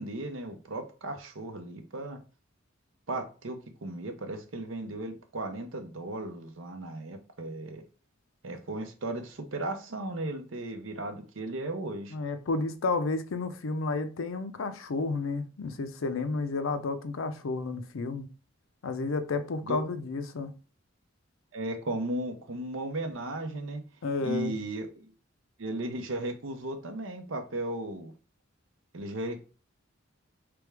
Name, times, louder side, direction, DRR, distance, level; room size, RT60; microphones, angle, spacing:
voice 1, 0.0-2.2 3.1-7.8 8.4-12.1 19.6-19.8 21.5-23.8 24.2-25.1 25.6-28.1 28.9-29.4, right 2 dB, 70° right, 0.8 m, -36 dB
voice 2, 12.1-18.3 18.8-20.5 24.0-24.5, left 3 dB, 85° left, 0.6 m, -31 dB
3.4 x 3.4 x 3.3 m
head